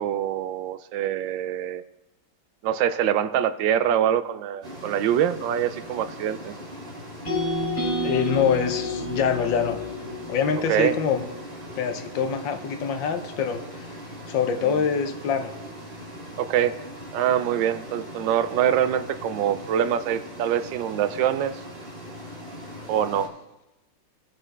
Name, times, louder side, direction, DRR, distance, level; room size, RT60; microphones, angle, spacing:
voice 1, 0.0-1.8 2.6-6.5 10.7-10.9 16.4-16.8 17.1-21.6 22.9-23.3, right 10 dB, 80° right, 13 dB, 1.2 m, -24 dB
sound 1, 4.6-23.3, equal, 30° right, 2.1 m, -40 dB
sound 2, 7.3-11.4, left 1 dB, 35° left, 3.5 m, -30 dB
voice 2, 8.0-9.8 10.3-11.2 11.8-14.0 14.3-15.5, left 7 dB, 80° left, 8 dB, 1.5 m, -25 dB
18.0 x 6.4 x 3.2 m, 0.95 s
omnidirectional pair, 2.0 m